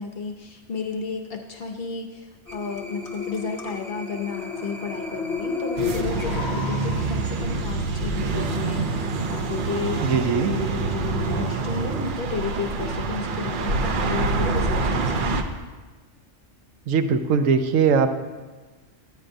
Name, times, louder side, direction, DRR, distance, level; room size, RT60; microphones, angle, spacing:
voice 1, 0.0-15.4, left 5 dB, 55° left, 4 dB, 0.7 m, -33 dB
sound 1, 2.5-7.5, left 5 dB, 35° left, 1.1 m, -32 dB
sound 2, 5.8-15.4, right 3 dB, 55° right, 0.6 m, -26 dB
voice 2, 10.0-10.6 16.9-18.2, right 6 dB, 80° right, 8 dB, 1.0 m, -20 dB
9.8 x 9.7 x 2.6 m, 1.3 s
omnidirectional pair, 1.4 m